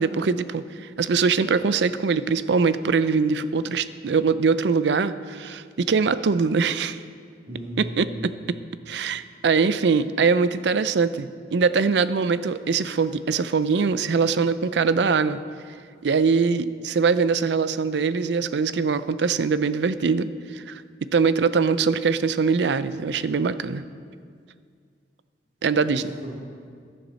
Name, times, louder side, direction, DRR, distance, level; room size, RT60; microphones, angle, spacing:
voice 1, 0.0-7.0 7.8-8.6 8.9-15.4 16.0-23.8 25.6-26.0, right 5 dB, 70° right, 14 dB, 0.5 m, -22 dB
voice 2, 7.5-8.2 25.7-26.3, equal, 55° right, -7 dB, 2.4 m, -36 dB
15.0 x 11.0 x 4.1 m, 2.1 s
head